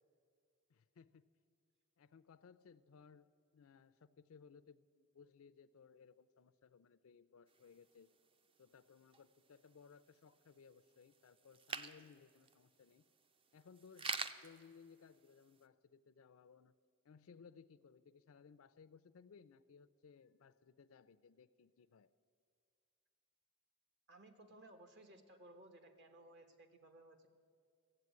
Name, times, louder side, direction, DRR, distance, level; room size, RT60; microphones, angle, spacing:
voice 1, 0.7-1.3 2.0-8.1 8.6-13.0 13.5-16.7 17.0-22.1, left 6 dB, 70° left, 12 dB, 0.4 m, -62 dB
sound 1, 7.5-15.6, right 4 dB, 25° right, 0.4 m, -50 dB
voice 2, 24.1-27.3, right 1 dB, 55° right, 7 dB, 1.2 m, -60 dB
14.5 x 8.0 x 9.4 m, 2.2 s
head